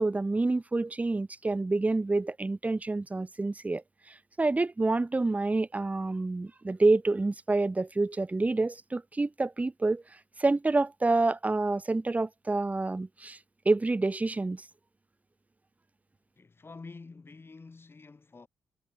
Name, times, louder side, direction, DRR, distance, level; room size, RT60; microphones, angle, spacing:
voice 1, 0.0-3.8 4.1-10.0 10.4-13.4 13.6-14.6, right 3 dB, 20° right, 0.9 m, -28 dB
voice 2, 16.4-18.5, left 4 dB, 30° left, 6.0 m, -48 dB
cardioid pair, 90°, 8 cm